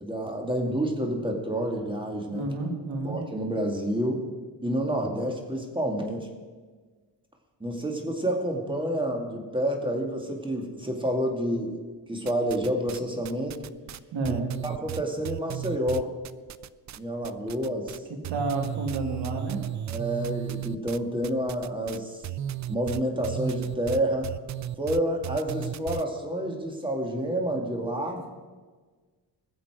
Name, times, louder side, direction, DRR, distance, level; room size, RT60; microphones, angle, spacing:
voice 1, 0.0-2.5 3.0-4.2 4.6-6.3 7.6-11.8 12.1-13.6 14.6-16.2 17.0-18.0 19.9-22.2 22.7-24.3 24.8-28.2, right 1 dB, 10° right, 2 dB, 2.2 m, -29 dB
voice 2, 2.3-3.2 14.1-14.5 18.3-19.6, right 3 dB, 80° right, 2 dB, 2.5 m, -30 dB
sound 1, 12.3-13.0 13.2-17.0 17.2-18.0 18.2-26.0, right 12 dB, 45° right, 0.4 m, -35 dB
21.0 x 7.1 x 5.0 m, 1.4 s
cardioid pair, 110°, 43 cm